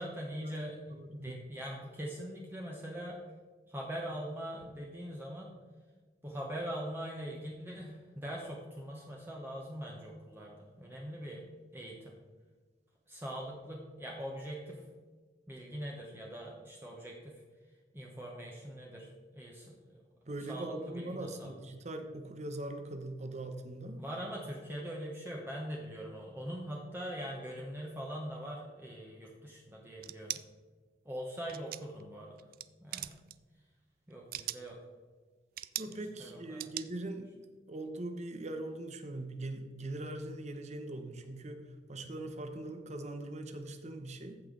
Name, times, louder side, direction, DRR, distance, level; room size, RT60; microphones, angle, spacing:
voice 1, 0.0-3.2 3.7-5.6 6.2-11.4 11.7-12.1 13.1-14.8 15.5-17.4 17.9-20.0 20.5-21.5 24.0-30.4 31.0-32.5 32.8-33.2 34.1-34.8 35.9-36.7, equal, 15° right, -2 dB, 1.1 m, -42 dB
voice 2, 0.9-1.4 20.2-24.1 35.8-37.3 37.7-44.4, right 2 dB, 40° right, 6 dB, 1.0 m, -41 dB
sound 1, 30.0-30.4 31.5-32.0 32.4-32.7 32.9-33.3 34.1-34.7 35.6-35.9 36.6-36.9, right 14 dB, 55° right, 0.4 m, -39 dB
14.5 x 5.6 x 3.9 m, 1.4 s
head